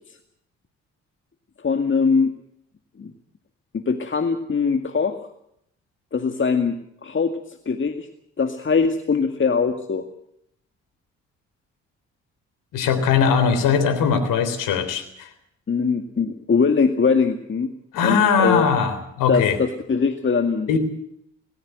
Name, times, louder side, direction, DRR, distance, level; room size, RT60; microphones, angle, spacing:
voice 1, 1.6-2.3 3.0-3.1 3.7-5.2 6.1-6.8 7.0-7.3 7.7-8.1 8.4-10.0 15.7-17.7 18.0-18.7 19.3-20.8, left 5 dB, 35° left, 7 dB, 2.0 m, -21 dB
voice 2, 12.7-15.3 17.9-19.6 20.7-20.8, left 6 dB, 70° left, 11 dB, 3.6 m, -20 dB
19.0 x 19.0 x 7.8 m, 0.73 s
hypercardioid pair, 45°, 33 cm